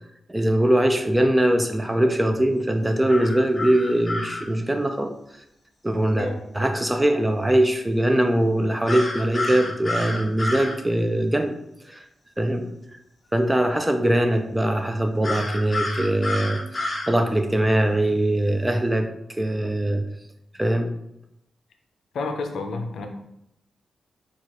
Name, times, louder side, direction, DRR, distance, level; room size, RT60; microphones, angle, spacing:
voice 1, 0.3-5.1 5.8-6.3 6.5-11.5 11.9-12.0 12.4-12.7 13.3-20.0 20.6-20.9, right 1 dB, 10° right, 6 dB, 0.4 m, -22 dB
sound 1, 3.1-4.4 8.9-10.8 15.2-17.1, left 2 dB, 30° left, 0.6 m, -29 dB
voice 2, 22.1-23.1, left 3 dB, 80° left, 4 dB, 0.5 m, -30 dB
4.5 x 2.4 x 2.9 m, 0.81 s
cardioid pair, 105°, 0 cm